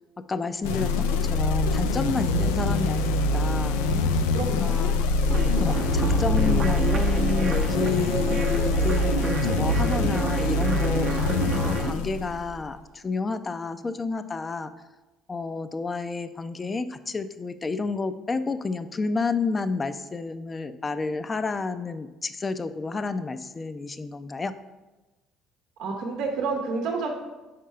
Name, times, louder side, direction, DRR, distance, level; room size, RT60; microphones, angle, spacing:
voice 1, 0.2-3.8 4.4-5.1 5.6-14.7 15.3-24.5, left 3 dB, 30° left, 11 dB, 0.5 m, -30 dB
sound 1, 0.6-12.6, left 3 dB, 90° left, 0.4 m, -24 dB
voice 2, 4.3-4.8 25.8-27.1, right 4 dB, 70° right, 1 dB, 0.8 m, -29 dB
sound 2, 5.3-11.9, right 5 dB, 45° right, 0.7 m, -31 dB
5.1 x 4.5 x 5.5 m, 1.1 s
supercardioid pair, 75°, 0 cm